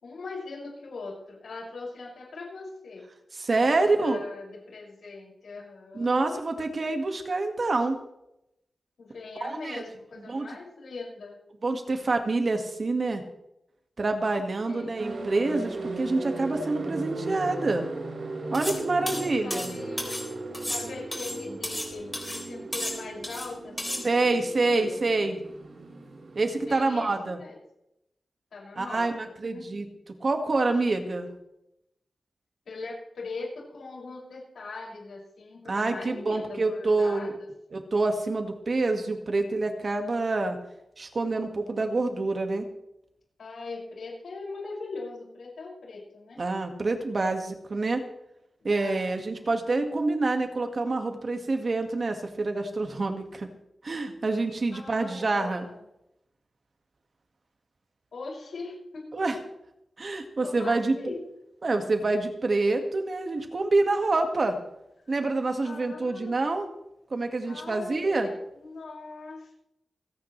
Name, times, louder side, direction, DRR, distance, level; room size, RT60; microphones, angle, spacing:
voice 1, 0.0-3.0 3.6-6.4 9.0-11.4 14.7-15.0 19.0-20.2 20.7-25.0 26.5-27.6 28.5-29.8 32.6-37.8 43.4-46.4 48.7-49.1 54.7-55.8 58.1-59.2 60.4-61.2 65.2-66.4 67.4-69.5, left 3 dB, 85° left, -4 dB, 6.4 m, -41 dB
voice 2, 3.3-4.2 5.9-8.0 9.4-9.8 10.3-10.5 11.6-13.2 14.0-17.9 18.5-19.7 24.0-25.4 26.4-27.4 28.8-29.9 30.2-31.3 35.7-37.3 37.7-40.6 41.0-42.7 46.4-48.0 48.6-53.5 53.8-55.7 59.1-59.4 60.0-61.1 61.6-64.6 65.1-66.7 67.1-68.3, right 3 dB, 45° right, 5 dB, 1.9 m, -27 dB
sound 1, 15.0-26.7, right 2 dB, 70° right, 4.0 m, -37 dB
sound 2, 18.5-18.8 19.1-20.3 20.5-21.9 22.1-22.4 22.7-23.5 23.8-24.0, left 1 dB, 10° left, 3.5 m, -33 dB
28.0 x 9.5 x 3.3 m, 0.84 s
wide cardioid pair, 95°, 0 cm